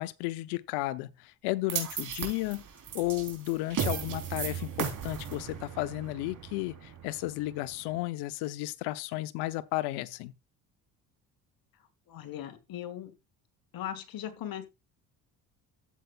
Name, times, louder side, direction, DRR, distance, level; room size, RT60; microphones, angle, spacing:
voice 1, 0.0-2.6 2.9-10.3, left 18 dB, 85° left, 0.8 m, -33 dB
sound 1, 1.7-8.0, right 8 dB, 50° right, 3.8 m, -36 dB
voice 2, 12.1-13.1 13.7-14.6, left 11 dB, 60° left, 2.1 m, -39 dB
12.5 x 8.1 x 2.4 m
supercardioid pair, 80°, 39 cm